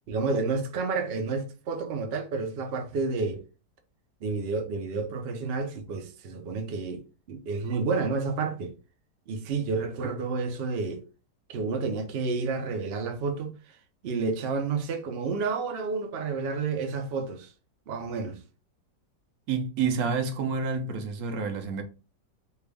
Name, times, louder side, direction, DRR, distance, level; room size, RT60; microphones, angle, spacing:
voice 1, 0.1-3.4 4.2-8.7 9.3-11.0 11.5-13.5 14.0-17.5 17.9-18.4, right 4 dB, 90° right, 0.5 m, -30 dB
voice 2, 19.5-21.8, right 5 dB, 65° right, 1.0 m, -28 dB
3.3 x 2.3 x 3.4 m
omnidirectional pair, 1.9 m